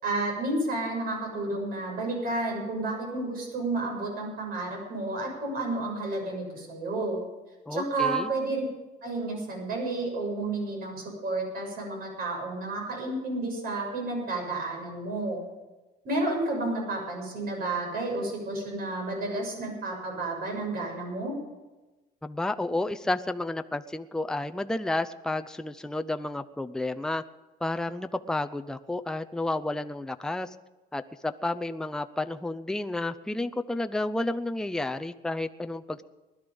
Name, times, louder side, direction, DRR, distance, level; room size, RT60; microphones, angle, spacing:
voice 1, 0.0-7.2 7.7-8.6 9.0-15.4 16.0-21.3, right 2 dB, 60° right, 1 dB, 7.2 m, -31 dB
voice 2, 7.7-8.3 22.2-27.2 27.6-30.6 30.9-36.0, left 2 dB, 5° left, 8 dB, 0.6 m, -31 dB
20.0 x 12.0 x 5.3 m, 1.1 s
cardioid pair, 110°, 17 cm